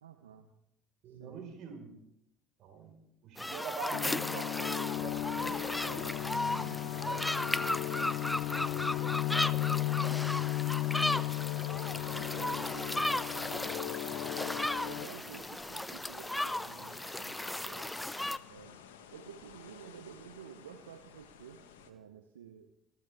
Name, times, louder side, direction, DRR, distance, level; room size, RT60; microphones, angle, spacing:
voice 1, 0.0-0.5 1.1-1.4 6.5-7.1 10.7-11.2 12.1-12.6 14.4-17.9 18.5-18.8 19.1-22.7, right 8 dB, 80° right, 6 dB, 0.9 m, -52 dB
voice 2, 1.0-1.9 2.6-3.0 3.2-6.4 6.8-7.2 8.5-10.3 11.9-12.9 13.4-14.3, right 5 dB, 55° right, 3 dB, 4.7 m, -46 dB
sound 1, 3.4-18.4, left 1 dB, 10° left, 0.6 m, -35 dB
sound 2, 3.9-15.1, left 16 dB, 60° left, 0.8 m, -35 dB
sound 3, 5.5-21.9, left 8 dB, 75° left, 1.5 m, -54 dB
26.5 x 15.0 x 3.6 m, 0.78 s
figure-of-eight pair, 60°, 0 cm